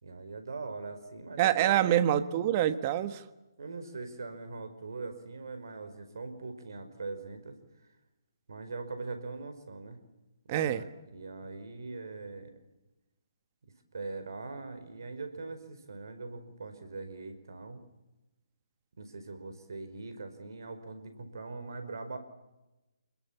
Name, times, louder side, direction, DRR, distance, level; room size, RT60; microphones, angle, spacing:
voice 1, 0.0-2.1 3.6-7.6 8.5-10.0 10.5-12.5 13.9-17.8 19.0-22.2, right 3 dB, 65° right, 8 dB, 5.0 m, -41 dB
voice 2, 1.4-3.2 10.5-10.8, right 12 dB, 30° right, 12 dB, 1.4 m, -26 dB
29.5 x 21.5 x 7.3 m, 1.0 s
figure-of-eight pair, 145°, 2 cm